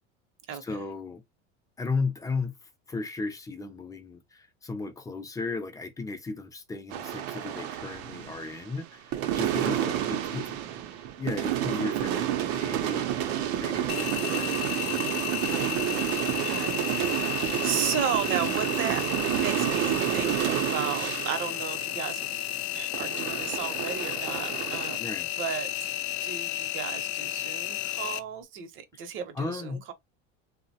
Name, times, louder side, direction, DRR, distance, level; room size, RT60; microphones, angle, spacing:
voice 1, 0.6-1.2 1.8-2.6 2.9-10.6 11.2-14.6 25.0-25.3 29.3-29.8, left 3 dB, 10° left, 0.4 m, -35 dB
sound 1, 6.9-8.8 9.1-22.6 22.9-25.0, right 11 dB, 75° right, 0.6 m, -30 dB
voice 2, 9.6-10.1 10.6-10.9 15.5-25.1 25.4-25.9 26.2-29.9, right 8 dB, 40° right, 0.7 m, -35 dB
Engine, 13.9-28.2, left 14 dB, 75° left, 0.5 m, -33 dB
2.9 x 2.1 x 2.7 m
supercardioid pair, 125°, 31 cm